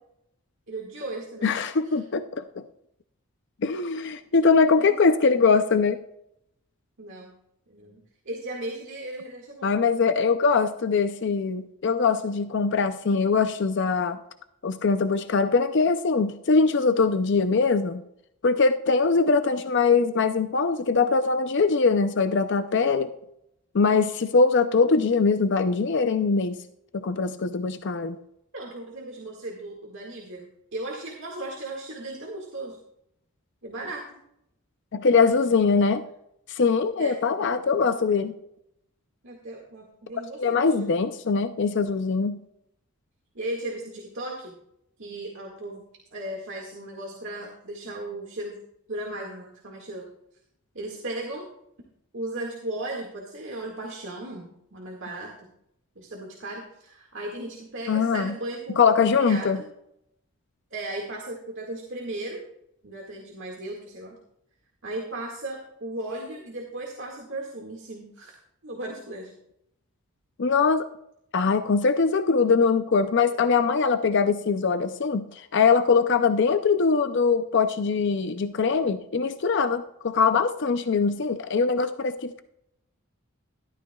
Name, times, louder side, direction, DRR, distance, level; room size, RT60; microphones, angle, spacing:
voice 1, 0.7-1.5 1.9-2.0 4.8-4.9 7.0-7.3 7.7-8.0 8.3-9.7 28.5-32.8 33.6-34.2 37.0-37.2 39.2-40.9 43.4-44.5 45.0-45.8 46.1-48.6 48.9-50.1 50.7-51.5 52.1-55.3 56.0-59.7 60.7-62.4 62.8-64.2 64.8-69.3, right 1 dB, 60° right, -1 dB, 1.9 m, -36 dB
voice 2, 1.4-2.6 3.6-6.0 9.6-14.2 14.6-18.0 18.4-23.1 23.7-26.6 26.9-28.2 34.9-36.0 36.5-38.3 40.4-42.4 57.9-58.3 58.8-59.6 70.4-70.9 71.3-82.4, left 4 dB, 55° left, 10 dB, 0.5 m, -22 dB
13.5 x 12.5 x 2.3 m, 0.76 s
head